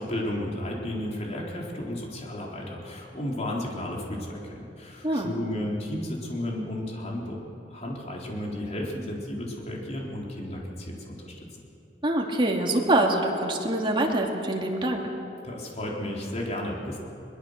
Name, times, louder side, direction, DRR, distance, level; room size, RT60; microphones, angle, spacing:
voice 1, 0.0-7.4 7.7-11.5 15.4-17.0, left 1 dB, 40° left, -2 dB, 4.1 m, -33 dB
voice 2, 12.0-15.0, right 1 dB, 30° right, 0 dB, 2.6 m, -25 dB
22.5 x 21.5 x 6.7 m, 2.8 s
head